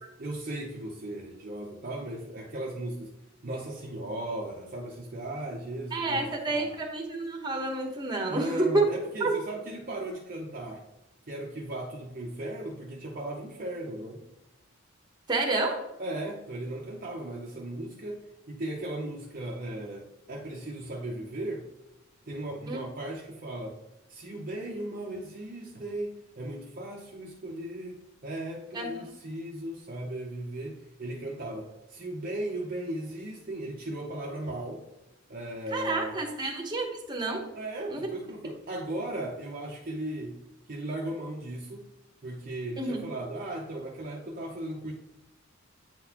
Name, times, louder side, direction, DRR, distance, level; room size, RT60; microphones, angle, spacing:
voice 1, 0.2-3.1 3.4-6.8 8.3-10.8 11.3-14.2 16.0-21.7 22.3-23.8 24.1-34.9 35.3-36.2 37.5-40.4 40.7-41.9 42.2-44.9, right 1 dB, 40° right, -1 dB, 0.6 m, -37 dB
voice 2, 5.9-8.8 9.2-9.3 15.3-15.8 22.7-22.8 28.7-29.0 35.7-37.4 37.9-38.1 42.8-43.1, right 2 dB, 20° right, 2 dB, 1.0 m, -29 dB
8.7 x 3.9 x 2.9 m, 0.92 s
head